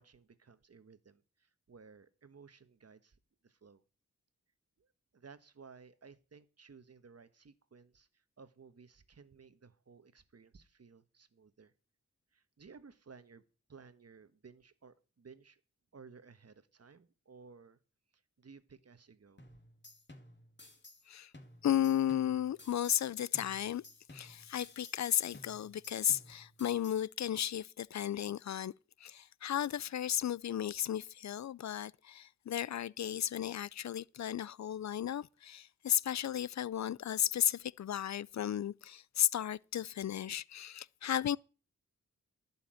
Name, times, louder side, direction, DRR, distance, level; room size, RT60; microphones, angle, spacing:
voice 1, 0.0-3.8 4.8-11.7 12.3-13.4 13.7-15.6 15.9-17.8 18.1-19.5, right 5 dB, 55° right, 1.4 m, -57 dB
sound 1, 19.4-21.1 21.3-23.1 23.3-25.1 25.3-27.1, left 1 dB, 35° left, 2.5 m, -56 dB
voice 2, 21.6-23.8 24.1-28.7 29.0-41.4, left 10 dB, 60° left, 0.5 m, -34 dB
11.5 x 5.7 x 9.0 m
cardioid pair, 50°, 31 cm